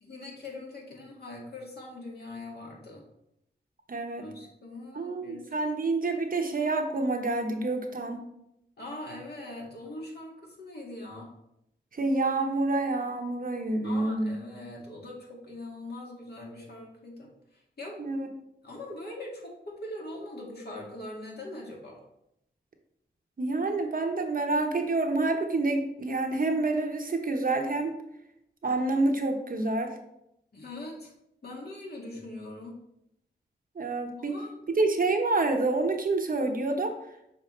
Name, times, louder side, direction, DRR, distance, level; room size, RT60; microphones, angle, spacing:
voice 1, 0.0-3.1 4.2-5.7 8.8-11.3 13.8-18.2 18.6-22.0 30.5-31.1 31.4-32.8 34.2-34.6, left 1 dB, 60° left, -2 dB, 2.0 m, -42 dB
voice 2, 3.9-4.3 4.9-8.2 11.9-14.4 18.0-18.3 23.4-27.9 28.6-30.0 33.8-34.4 34.8-37.0, right 2 dB, 50° right, 4 dB, 0.9 m, -28 dB
6.5 x 4.6 x 3.2 m, 0.80 s
cardioid pair, 70°, 19 cm